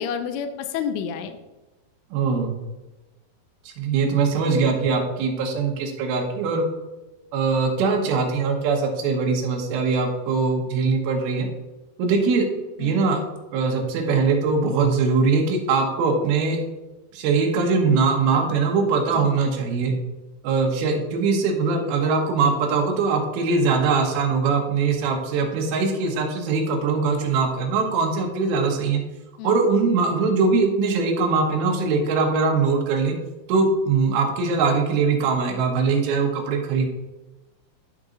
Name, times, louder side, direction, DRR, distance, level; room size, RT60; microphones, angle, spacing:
voice 1, 0.0-1.4 12.8-13.1 19.1-19.3 29.4-29.7, left 7 dB, 90° left, 8 dB, 2.6 m, -30 dB
voice 2, 2.1-2.5 3.8-6.7 7.3-11.5 12.0-12.4 12.8-13.2 13.5-16.6 17.1-19.9 20.4-29.0 29.4-33.1 33.5-36.9, right 4 dB, 75° right, 2 dB, 3.0 m, -21 dB
11.5 x 4.0 x 3.8 m, 1.1 s
omnidirectional pair, 4.5 m